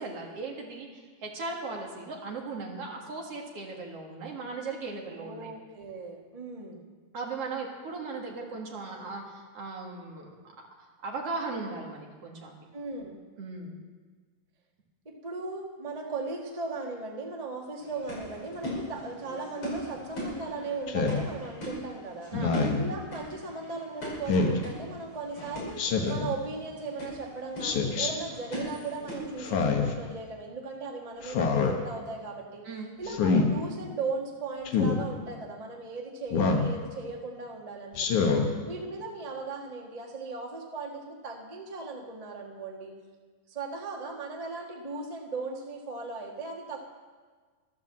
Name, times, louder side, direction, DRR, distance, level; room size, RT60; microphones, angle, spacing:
voice 1, 0.0-5.5 7.1-12.6 13.4-13.8 22.3-22.8 32.6-32.9 38.2-38.5, right 3 dB, 50° right, -1 dB, 2.8 m, -38 dB
voice 2, 5.1-6.8 12.7-13.2 15.0-22.3 22.7-25.8 26.1-32.6 33.0-38.1 38.7-42.9 43.5-46.8, right 3 dB, 85° right, 0 dB, 0.3 m, -37 dB
sound 1, 17.8-29.7, equal, 45° left, 6.4 m, -40 dB
Speech synthesizer, 20.9-21.2 22.3-22.8 24.3-24.6 25.8-26.3 27.6-28.1 29.4-29.9 31.2-31.7 33.1-33.5 34.7-35.0 36.3-36.7 37.9-38.5, left 4 dB, 70° left, 2.6 m, -25 dB
13.0 x 12.0 x 7.4 m, 1.5 s
omnidirectional pair, 3.8 m